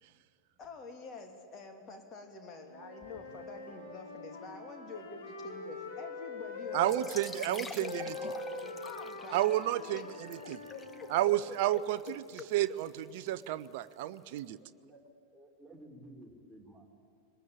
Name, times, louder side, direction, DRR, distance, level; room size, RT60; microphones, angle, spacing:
voice 1, 0.6-9.5 9.8-10.2 10.4-11.1 11.5-11.8 12.4-12.5, left 3 dB, 30° left, 4 dB, 2.9 m, -47 dB
Wind instrument woodwind instrument, 2.7-7.1 7.8-11.5, left 3 dB, 60° left, 4.6 m, -43 dB
voice 2, 6.7-8.1 9.3-10.6 11.1-12.2 12.5-14.6, right 14 dB, 50° right, 13 dB, 0.6 m, -31 dB
sound 1, 6.8-14.4, left 4 dB, 15° left, 0.9 m, -49 dB
voice 3, 14.6-15.0 15.3-16.9, right 1 dB, 5° right, 0 dB, 3.6 m, -54 dB
23.0 x 20.0 x 8.7 m, 2.3 s
figure-of-eight pair, 90°, 0 cm